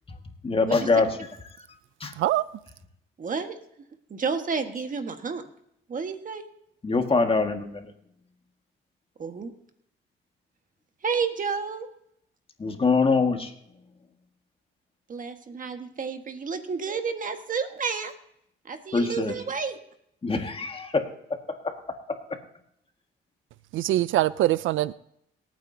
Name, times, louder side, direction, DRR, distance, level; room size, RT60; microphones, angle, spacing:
voice 1, 0.4-1.2 1.6-1.7 2.0-2.1 6.8-7.9 12.6-13.5 18.9-19.4 20.2-22.2, left 4 dB, 30° left, 1.8 m, -25 dB
voice 2, 3.2-3.6 4.1-5.4 5.9-6.4 9.2-9.5 11.0-11.9 15.1-18.1 18.6-19.8, right 5 dB, 40° right, 1.5 m, -30 dB
voice 3, 23.7-24.9, right 15 dB, 80° right, 0.4 m, -23 dB
26.5 x 9.2 x 2.8 m
cardioid pair, 90°, 20 cm